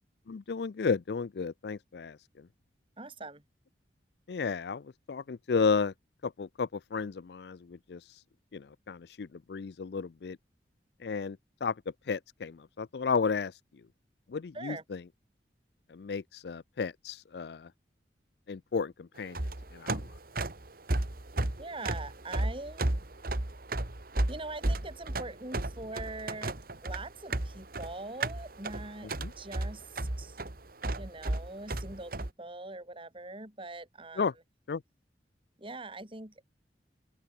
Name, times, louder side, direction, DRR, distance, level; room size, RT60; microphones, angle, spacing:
voice 1, 0.3-2.5 4.3-5.9 6.2-8.0 8.5-10.4 11.0-11.7 12.1-13.5 14.3-15.0 15.9-17.7 18.5-20.1 29.2-29.3 34.2-34.3 34.7-34.8, left 5 dB, 65° left, 0.4 m, -33 dB
voice 2, 3.0-3.4 14.5-14.8 21.6-22.9 24.3-26.5 26.8-29.1 29.4-30.4 30.9-34.3 35.6-36.3, right 2 dB, 30° right, 4.8 m, -42 dB
sound 1, 19.2-32.3, right 2 dB, 55° right, 1.9 m, -33 dB
open air
head